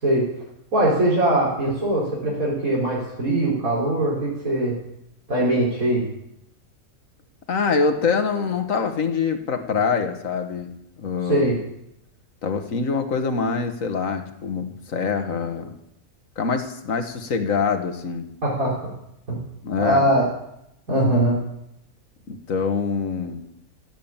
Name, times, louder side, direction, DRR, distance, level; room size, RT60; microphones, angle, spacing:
voice 1, 0.7-4.8 5.3-6.1 11.3-11.6 18.4-18.9 19.3-19.4 19.8-20.2 20.9-21.4, right 1 dB, 80° right, -6 dB, 5.0 m, -21 dB
voice 2, 7.5-10.7 11.0-11.5 12.4-15.7 16.4-18.3 19.6-20.1 22.3-23.4, left 5 dB, 70° left, 6 dB, 1.9 m, -24 dB
16.5 x 8.6 x 8.8 m, 0.80 s
omnidirectional pair, 1.5 m